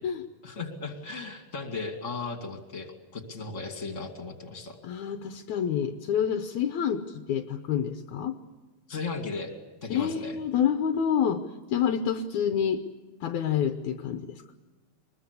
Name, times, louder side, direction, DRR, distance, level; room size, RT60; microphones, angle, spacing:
voice 1, 0.4-4.8 8.9-9.5 9.8-10.4, left 4 dB, 25° left, 6 dB, 2.5 m, -36 dB
voice 2, 4.8-8.4 9.9-11.4 11.7-12.8 13.2-14.4, left 8 dB, 70° left, 8 dB, 2.2 m, -28 dB
23.0 x 21.0 x 8.3 m, 1.3 s
omnidirectional pair, 3.8 m